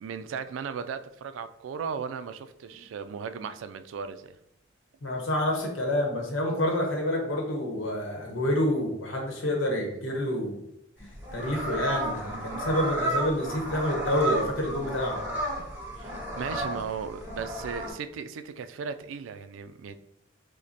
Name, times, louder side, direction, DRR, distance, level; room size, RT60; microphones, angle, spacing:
voice 1, 0.0-4.3 16.0-19.9, right 6 dB, 85° right, 0.3 m, -36 dB
voice 2, 5.0-10.6 11.0-15.2, left 1 dB, 85° left, 0.9 m, -28 dB
sound 1, 11.0-17.9, right 1 dB, 10° right, 0.9 m, -33 dB
4.9 x 2.1 x 2.8 m
head